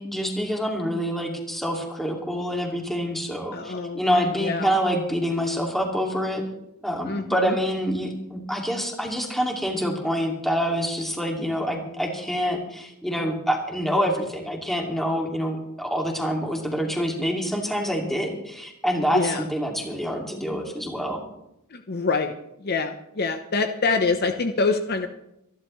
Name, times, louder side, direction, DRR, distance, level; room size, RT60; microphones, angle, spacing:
voice 1, 0.0-6.4 6.8-21.3, equal, ahead, 0 dB, 2.4 m, -26 dB
voice 2, 3.5-4.7 7.0-7.6 19.1-19.5 21.7-22.3 22.6-25.1, left 4 dB, 45° left, 6 dB, 0.8 m, -25 dB
25.0 x 11.0 x 3.2 m, 0.82 s
head